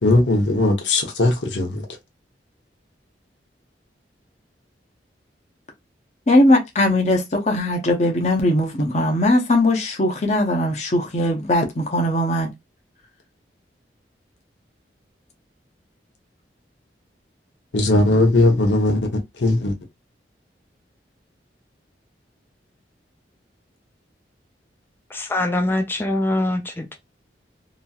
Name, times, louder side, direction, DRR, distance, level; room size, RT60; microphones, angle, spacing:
voice 1, 0.0-1.7 17.7-19.0 19.4-19.7, left 2 dB, 85° left, 0.9 m, -18 dB
voice 2, 6.3-12.5, left 1 dB, 40° left, 0.7 m, -19 dB
voice 3, 25.1-26.9, left 1 dB, 10° left, 0.3 m, -23 dB
3.0 x 2.6 x 2.3 m
head